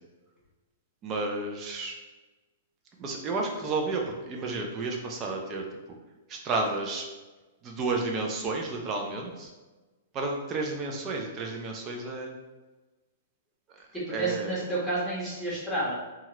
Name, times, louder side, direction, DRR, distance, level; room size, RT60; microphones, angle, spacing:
voice 1, 1.0-2.0 3.0-5.6 6.3-7.0 7.6-9.5 10.1-12.3 14.1-14.6, right 3 dB, 25° right, 1 dB, 0.5 m, -31 dB
voice 2, 13.9-15.9, right 2 dB, ahead, -10 dB, 1.4 m, -30 dB
2.8 x 2.4 x 3.0 m, 1.2 s
hypercardioid pair, 150°, 0 cm